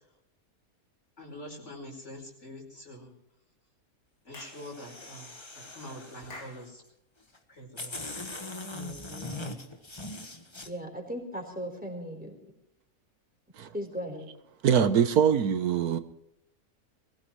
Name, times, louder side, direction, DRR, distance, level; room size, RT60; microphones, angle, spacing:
voice 1, 1.2-3.1 4.2-6.8 7.5-8.2 8.9-9.1, left 1 dB, 50° left, 0 dB, 5.2 m, -45 dB
Clapping / Chirp tweet, 4.3-4.7 6.3-6.6, left 2 dB, 80° left, 3.0 m, -45 dB
sound 1, 4.3-6.7 7.3-7.4 7.8-10.7, left 2 dB, 20° left, 1.3 m, -41 dB
voice 2, 8.7-9.6 10.6-12.4 13.7-14.3, equal, 5° right, 2 dB, 4.2 m, -38 dB
voice 3, 14.6-16.0, right 8 dB, 85° right, 10 dB, 1.5 m, -23 dB
23.0 x 16.5 x 3.2 m, 0.77 s
omnidirectional pair, 1.5 m